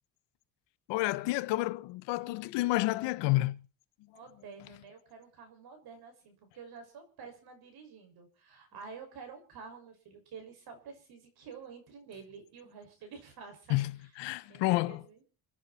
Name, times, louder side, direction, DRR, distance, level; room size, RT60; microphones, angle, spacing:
voice 1, 0.9-3.6 13.7-13.9 14.2-15.0, left 18 dB, 90° left, 1.2 m, -29 dB
voice 2, 4.1-13.8 14.5-15.2, right 5 dB, 60° right, 6.3 m, -49 dB
28.5 x 10.0 x 4.4 m
cardioid pair, 140°, 42 cm